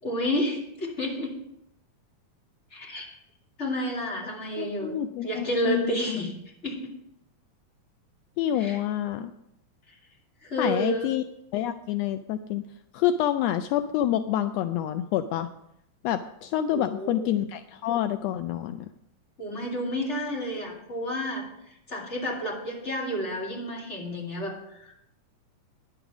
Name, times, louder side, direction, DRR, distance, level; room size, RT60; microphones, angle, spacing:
voice 1, 0.0-1.4 2.7-3.1 3.6-6.3 6.6-6.8 8.5-8.8 10.4-11.1 16.7-17.3 19.4-24.9, equal, 25° left, -3 dB, 2.7 m, -31 dB
voice 2, 4.6-6.2 8.4-9.3 10.6-11.2 11.5-12.6 12.9-15.5 16.0-18.9, left 11 dB, 85° left, 9 dB, 1.5 m, -27 dB
10.0 x 8.9 x 6.0 m, 0.79 s
omnidirectional pair, 3.4 m